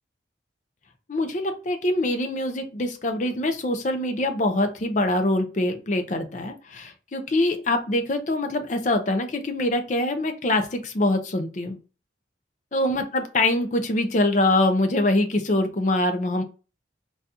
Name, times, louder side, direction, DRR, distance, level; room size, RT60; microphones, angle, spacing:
voice 1, 1.1-11.8 12.7-16.4, left 1 dB, 40° left, 6 dB, 0.5 m, -24 dB
4.0 x 2.4 x 2.6 m, 0.34 s
head